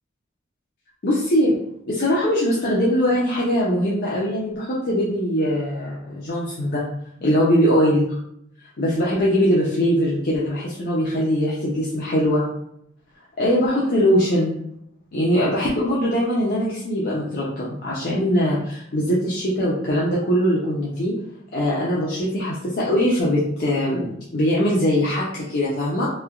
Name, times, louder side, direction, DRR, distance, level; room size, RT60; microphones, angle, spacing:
voice 1, 1.0-1.5 1.9-6.8 7.2-8.1 8.8-12.4 13.4-14.6 15.1-21.1 21.5-26.1, equal, 55° left, -6 dB, 0.5 m, -21 dB
3.1 x 2.2 x 2.3 m, 0.73 s
head